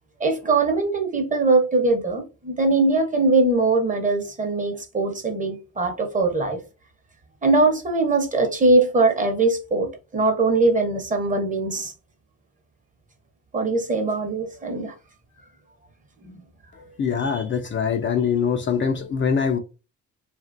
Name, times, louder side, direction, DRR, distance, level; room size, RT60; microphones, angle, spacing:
voice 1, 0.2-6.6 7.4-11.9 13.5-14.9 16.2-16.4 17.2-17.4, right 3 dB, 25° right, 0.9 m, -21 dB
voice 2, 16.8-19.6, left 6 dB, 40° left, 0.4 m, -23 dB
2.7 x 2.5 x 2.5 m
cardioid pair, 90°, 30 cm